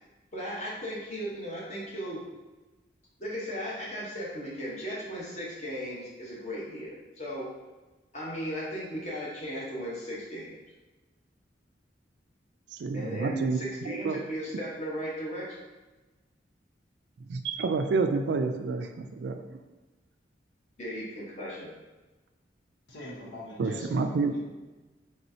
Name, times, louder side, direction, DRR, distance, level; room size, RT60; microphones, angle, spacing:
voice 1, 0.3-2.2 3.2-7.5 8.1-10.5 12.9-15.6 20.8-21.7, equal, 40° left, -6 dB, 1.1 m, -36 dB
voice 2, 12.8-13.6 13.8-14.2 17.3-19.4 23.6-24.4, right 4 dB, 65° right, 7 dB, 0.3 m, -29 dB
voice 3, 22.9-24.4, left 1 dB, 80° left, -3 dB, 1.0 m, -42 dB
4.2 x 3.3 x 2.7 m, 1.2 s
head